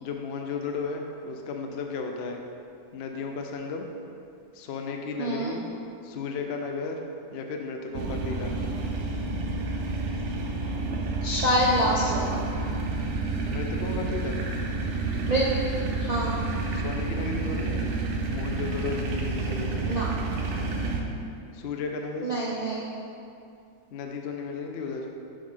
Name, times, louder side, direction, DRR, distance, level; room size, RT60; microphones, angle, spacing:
voice 1, 0.0-2.4 2.9-3.9 4.5-5.6 6.0-7.0 7.3-8.5 13.5-14.4 16.7-17.8 18.3-19.8 21.5-22.3 23.9-25.1, left 4 dB, 65° left, 3 dB, 0.6 m, -34 dB
voice 2, 5.2-5.5 11.2-12.4 15.3-15.4 16.0-16.4 19.9-20.1 22.2-22.9, equal, 80° right, -6 dB, 0.3 m, -26 dB
sound 1, 7.9-21.0, right 3 dB, 60° right, 0.8 m, -29 dB
6.7 x 3.4 x 5.5 m, 2.5 s
omnidirectional pair, 1.8 m